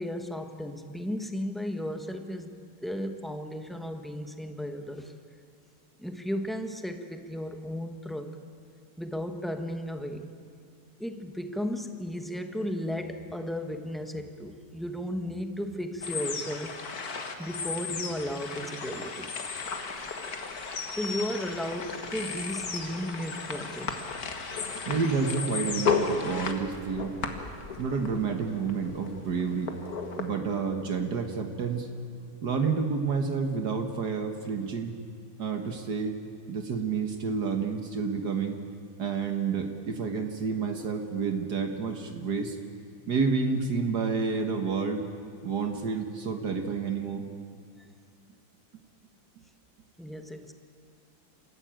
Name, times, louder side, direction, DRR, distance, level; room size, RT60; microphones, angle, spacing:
voice 1, 0.0-5.1 6.0-8.4 9.0-10.3 11.0-16.8 17.4-19.3 20.6-24.0 50.0-50.5, equal, ahead, 6 dB, 0.8 m, -35 dB
sound 1, 16.0-30.3, left 5 dB, 50° left, 2.0 m, -34 dB
voice 2, 24.9-27.2 27.8-29.7 30.2-31.9 32.4-34.9 35.4-36.2 36.5-38.6 39.0-42.6 43.1-45.0 45.4-47.2, right 5 dB, 60° right, 5 dB, 1.9 m, -29 dB
27.5 x 14.5 x 8.9 m, 2.3 s
omnidirectional pair, 2.1 m